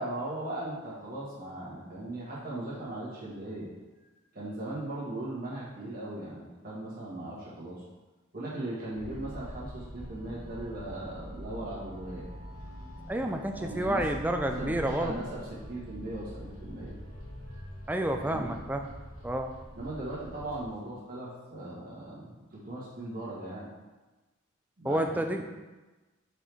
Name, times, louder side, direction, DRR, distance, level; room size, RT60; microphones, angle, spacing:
voice 1, 0.0-3.7 4.3-7.8 8.3-12.2 13.5-14.1 14.5-16.9 17.6-17.7 18.2-18.6 19.7-23.7 24.8-25.4, right 1 dB, 45° right, -8 dB, 1.7 m, -38 dB
sound 1, 8.9-20.7, equal, 65° left, 1.6 m, -44 dB
voice 2, 13.1-15.2 17.9-18.9 19.2-19.5 24.8-25.4, right 1 dB, 10° right, 4 dB, 0.4 m, -30 dB
6.1 x 4.6 x 3.5 m, 1.2 s
head